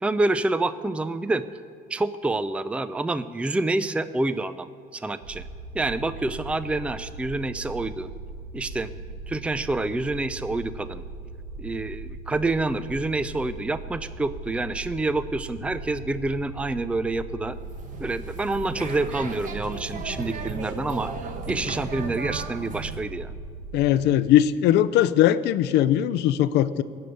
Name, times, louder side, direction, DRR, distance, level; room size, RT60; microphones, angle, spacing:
voice 1, 0.0-1.4 1.9-5.5 5.7-8.1 8.5-8.9 9.3-11.0 11.6-17.5 18.0-21.1 21.5-23.3, right 2 dB, 5° right, 13 dB, 0.5 m, -27 dB
sound 1, 5.2-23.9, right 3 dB, 75° right, 1.5 m, -39 dB
sound 2, 17.6-23.0, right 5 dB, 50° right, 1.4 m, -36 dB
voice 2, 23.7-26.8, left 12 dB, 85° left, 15 dB, 0.6 m, -20 dB
17.0 x 7.0 x 9.4 m, 2.3 s
cardioid pair, 110°, 17 cm